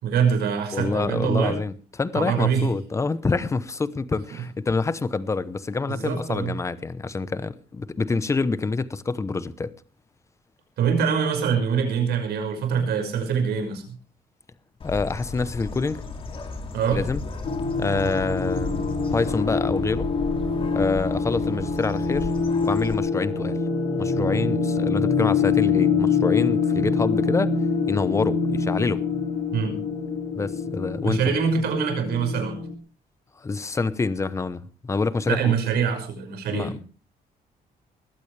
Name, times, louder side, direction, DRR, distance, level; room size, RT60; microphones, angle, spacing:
voice 1, 0.0-1.6 2.1-2.7 4.4-4.5 5.9-6.6 10.8-13.8 16.7-17.0 29.5-29.7 31.0-32.6 35.3-36.7, right 7 dB, 90° right, 5.8 m, -24 dB
voice 2, 0.7-9.7 14.8-16.0 16.9-17.2 17.8-20.1 20.7-22.3 22.6-23.6 24.0-27.5 27.9-29.0 30.4-31.2 33.4-35.5 36.5-36.8, left 4 dB, 20° left, 0.8 m, -26 dB
Bird, 14.8-22.9, left 3 dB, 35° left, 2.7 m, -35 dB
sound 1, 17.4-32.7, left 5 dB, 50° left, 3.8 m, -25 dB
21.0 x 15.5 x 3.3 m
cardioid pair, 160°, 16 cm